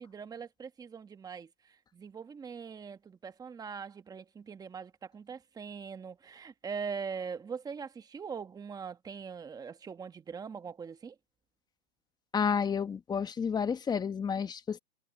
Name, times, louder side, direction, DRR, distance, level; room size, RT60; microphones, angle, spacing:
voice 1, 0.0-1.5 1.9-11.1, right 6 dB, 10° right, 1.3 m, -42 dB
voice 2, 12.3-14.8, left 6 dB, 15° left, 1.1 m, -30 dB
hypercardioid pair, 140°, 31 cm